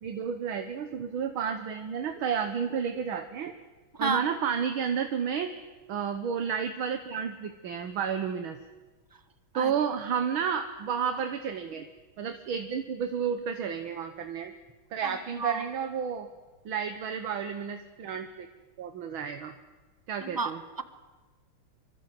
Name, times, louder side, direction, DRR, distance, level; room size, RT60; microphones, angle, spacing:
voice 1, 0.0-3.5 4.0-5.6 5.9-8.6 9.5-11.8 12.2-14.5 14.9-16.3 16.7-18.5 18.8-19.5 20.1-20.6, right 7 dB, 70° right, 7 dB, 2.0 m, -31 dB
voice 2, 3.9-4.3 9.5-9.7 15.0-15.6 20.2-20.8, right 4 dB, 15° right, 10 dB, 0.9 m, -32 dB
26.0 x 25.0 x 7.7 m, 1.3 s
omnidirectional pair, 2.4 m